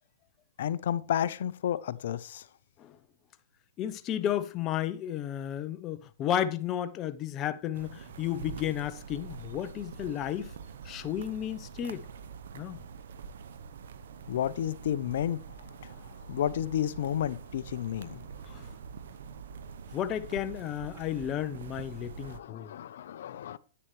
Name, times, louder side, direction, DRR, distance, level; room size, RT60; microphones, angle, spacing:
voice 1, 0.6-2.4 14.3-15.4 15.8-15.9 16.3-18.2 22.2-23.6, left 10 dB, 65° left, 0.6 m, -31 dB
voice 2, 3.8-10.5 10.8-12.1 12.5-12.8 18.5-18.7 19.9-22.7, left 11 dB, 30° left, 0.6 m, -33 dB
sound 1, 7.7-22.4, right 6 dB, 70° right, 0.8 m, -45 dB
9.9 x 8.9 x 3.1 m
hypercardioid pair, 140°, 0 cm